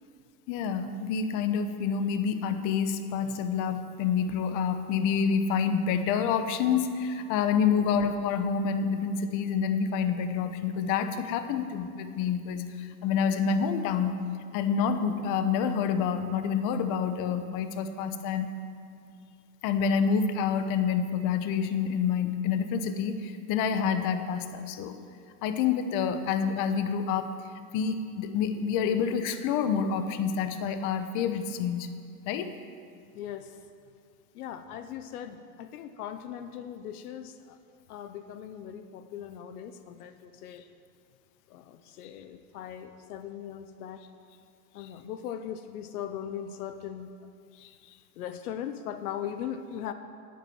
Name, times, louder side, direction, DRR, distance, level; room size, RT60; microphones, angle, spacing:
voice 1, 0.5-14.2 14.5-18.5 19.6-25.0 25.4-27.3 27.7-31.9 32.3-32.5 42.0-42.1 44.8-44.9 47.6-47.7, left 6 dB, 40° left, 9 dB, 1.1 m, -28 dB
voice 2, 33.1-33.6 34.3-37.6 37.9-40.7 41.5-44.0 44.7-47.3 48.2-49.9, left 9 dB, 70° left, 9 dB, 1.0 m, -39 dB
11.5 x 9.4 x 7.9 m, 2.3 s
supercardioid pair, 130°, 46 cm